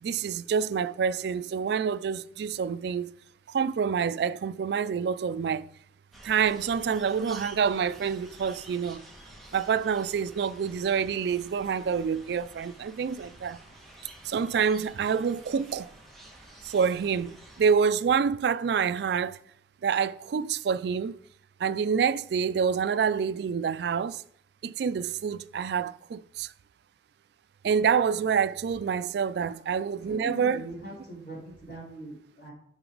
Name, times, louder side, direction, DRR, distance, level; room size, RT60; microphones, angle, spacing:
voice 1, 0.0-3.1 3.5-5.7 6.2-9.0 9.5-13.6 14.2-15.9 16.6-19.4 19.8-21.2 21.6-24.2 24.6-26.5 27.6-30.6, right 6 dB, 65° right, 0.3 m, -27 dB
sound 1, 6.1-17.7, right 1 dB, ahead, 1.3 m, -50 dB
voice 2, 29.4-32.5, right 1 dB, 60° left, 3.8 m, -42 dB
8.9 x 5.9 x 3.9 m
head